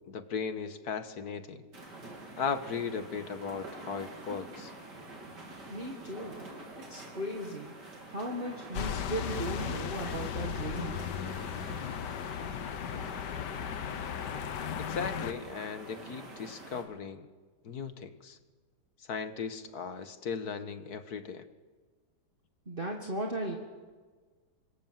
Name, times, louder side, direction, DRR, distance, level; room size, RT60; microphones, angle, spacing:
voice 1, 0.1-1.7 2.4-4.7 14.8-17.3 17.6-18.4 19.1-21.5, left 6 dB, 65° left, 10 dB, 1.8 m, -37 dB
sound 1, 1.7-16.8, right 2 dB, 85° right, 4.4 m, -46 dB
voice 2, 5.7-6.4 6.8-7.7 8.1-11.1 22.7-23.6, right 1 dB, 30° right, 1 dB, 2.1 m, -37 dB
sound 2, 8.7-15.3, left 8 dB, 80° left, 1.6 m, -36 dB
26.5 x 22.0 x 7.4 m, 1.4 s
omnidirectional pair, 1.8 m